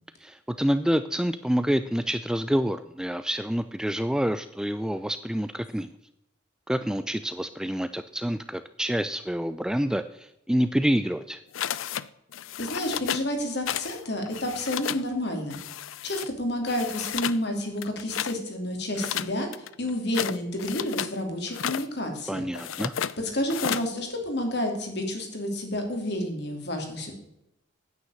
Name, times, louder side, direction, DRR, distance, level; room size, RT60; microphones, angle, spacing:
voice 1, 0.2-5.9 6.7-11.4 22.3-22.9, equal, 5° right, 10 dB, 0.3 m, -27 dB
sound 1, 11.5-12.1 12.3-13.3 13.7-14.0 14.3-15.1 15.5-16.3 16.7-17.4 17.8-18.4 18.9-21.2 21.5-21.9 22.5-23.2 23.5-23.9, left 9 dB, 80° left, 0.5 m, -32 dB
voice 2, 12.6-15.6 16.0-22.4 23.2-27.1, left 1 dB, 55° left, 4 dB, 2.7 m, -30 dB
9.5 x 9.4 x 6.4 m, 0.83 s
head